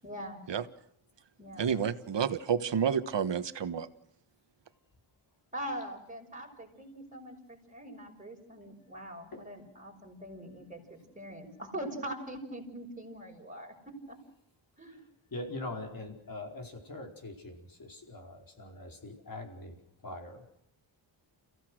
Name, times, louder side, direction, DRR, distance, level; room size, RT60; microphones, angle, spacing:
voice 1, 0.0-0.4 1.4-1.7 5.5-13.7 14.1-14.2 14.8-15.0, right 1 dB, 15° right, 0 dB, 5.9 m, -42 dB
voice 2, 1.6-3.9, right 7 dB, 60° right, 12 dB, 1.3 m, -30 dB
voice 3, 15.3-19.8 20.0-20.4, left 2 dB, 45° left, 2 dB, 4.7 m, -42 dB
29.5 x 16.0 x 6.4 m, 0.76 s
wide cardioid pair, 105°, 48 cm